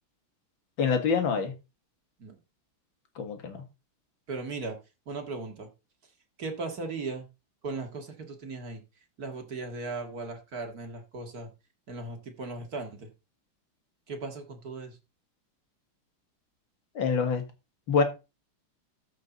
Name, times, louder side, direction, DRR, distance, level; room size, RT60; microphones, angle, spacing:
voice 1, 0.8-1.5 3.2-3.6 17.0-17.4 17.9-18.0, left 5 dB, 65° left, 2.5 m, -25 dB
voice 2, 4.3-4.8 5.1-5.7 6.4-7.3 7.6-8.8 9.2-11.5 11.9-13.1 14.1-15.0, right 3 dB, 45° right, 2.3 m, -37 dB
13.5 x 5.9 x 4.0 m
omnidirectional pair, 2.4 m